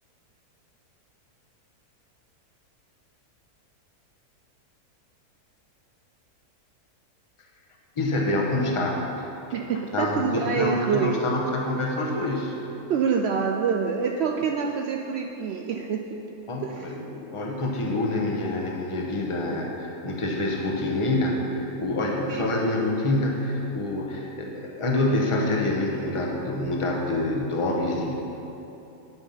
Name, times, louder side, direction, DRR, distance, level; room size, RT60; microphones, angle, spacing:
voice 1, 8.0-9.3 9.9-12.6 16.5-28.1, left 2 dB, 25° left, -1 dB, 0.9 m, -26 dB
voice 2, 9.5-11.2 12.9-16.1 16.6-17.0 22.3-22.5, right 6 dB, 75° right, 2 dB, 0.6 m, -26 dB
8.9 x 8.1 x 5.6 m, 3.0 s
omnidirectional pair, 1.7 m